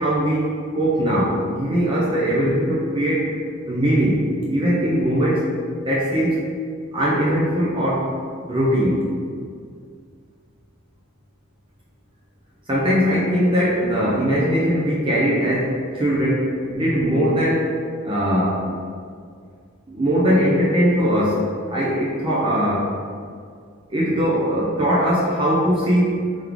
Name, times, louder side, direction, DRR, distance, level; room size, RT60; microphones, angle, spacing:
voice 1, 0.0-3.3 3.7-5.5 5.8-6.4 6.9-8.1 8.5-9.1 12.7-17.7 18.0-18.6 19.9-22.9 23.9-26.3, equal, 25° right, -6 dB, 0.5 m, -20 dB
3.5 x 3.2 x 3.6 m, 2.1 s
head